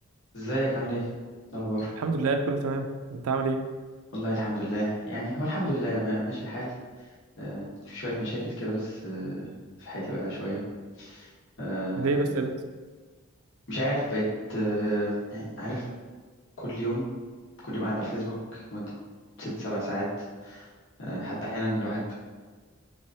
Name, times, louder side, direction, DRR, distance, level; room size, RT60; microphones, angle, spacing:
voice 1, 0.3-1.1 1.5-1.9 4.1-6.7 7.4-9.5 9.8-10.6 11.0-11.3 11.6-12.3 13.7-15.8 16.6-17.0 17.6-18.9 19.4-20.1 20.4-20.7 21.0-22.2, equal, 55° left, -8 dB, 1.0 m, -31 dB
voice 2, 2.0-3.6 12.0-12.5, right 3 dB, 90° right, 6 dB, 0.4 m, -27 dB
3.6 x 3.1 x 2.6 m, 1.4 s
head